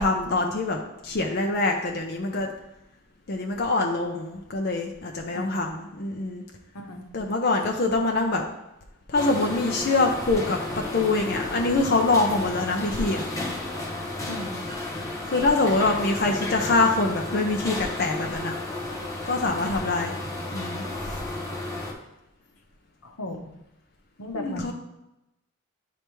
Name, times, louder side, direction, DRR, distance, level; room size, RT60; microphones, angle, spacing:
voice 1, 0.0-2.5 3.3-6.4 7.1-8.4 9.1-10.6 10.9-13.3 15.3-18.6 19.3-20.1 20.5-21.2 24.3-24.7, left 3 dB, 45° left, 1 dB, 0.6 m, -24 dB
sound 1, 9.1-21.9, left 2 dB, 15° left, 0.9 m, -33 dB
voice 2, 14.3-14.6 23.0-23.5 24.2-24.7, left 1 dB, 80° left, 4 dB, 0.9 m, -36 dB
10.0 x 3.4 x 3.1 m, 0.92 s
head